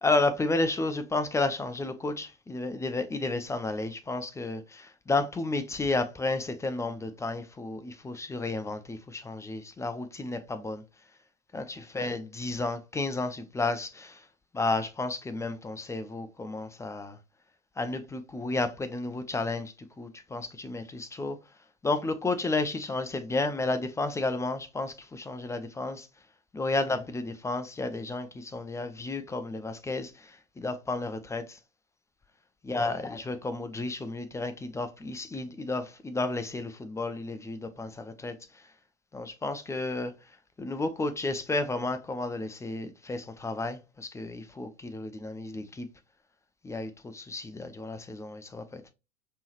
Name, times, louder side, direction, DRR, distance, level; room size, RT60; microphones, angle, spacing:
voice 1, 0.0-10.8 11.5-14.2 14.5-17.2 17.8-21.4 21.8-26.1 26.5-30.1 30.6-31.4 32.6-38.3 39.1-40.1 40.6-45.9 46.6-48.9, left 2 dB, 10° left, 0.5 m, -32 dB
5.3 x 3.2 x 2.9 m
hypercardioid pair, 85°, 38 cm